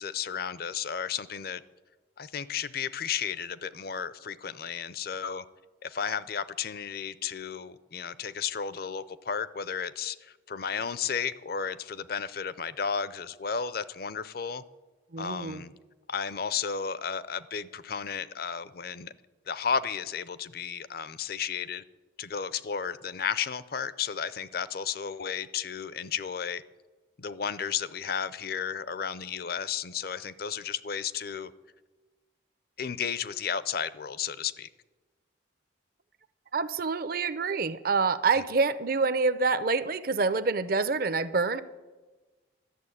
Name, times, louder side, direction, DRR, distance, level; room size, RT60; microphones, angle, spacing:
voice 1, 0.0-1.6 2.2-5.4 5.8-14.6 15.2-15.7 16.1-19.1 19.5-21.8 22.2-26.6 27.2-31.5 32.8-34.7, left 7 dB, 50° left, 0.5 m, -33 dB
voice 2, 15.1-15.6 36.5-41.6, right 4 dB, 50° right, 0.6 m, -27 dB
13.0 x 7.1 x 9.7 m
head